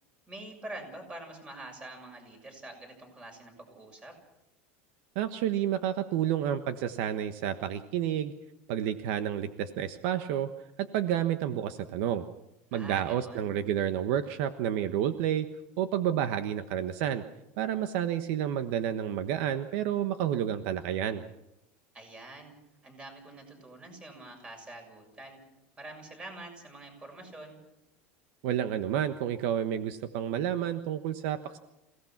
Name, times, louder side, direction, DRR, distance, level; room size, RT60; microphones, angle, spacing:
voice 1, 0.3-4.1 12.7-13.5 21.9-22.5 22.8-25.4 25.8-27.6, right 2 dB, 15° right, 4 dB, 6.9 m, -46 dB
voice 2, 5.1-8.3 8.7-10.5 10.8-12.2 12.7-15.5 15.8-17.2 17.6-21.2 28.4-31.6, right 10 dB, 65° right, 9 dB, 1.3 m, -30 dB
28.0 x 18.0 x 6.0 m, 0.88 s
supercardioid pair, 140°, 7 cm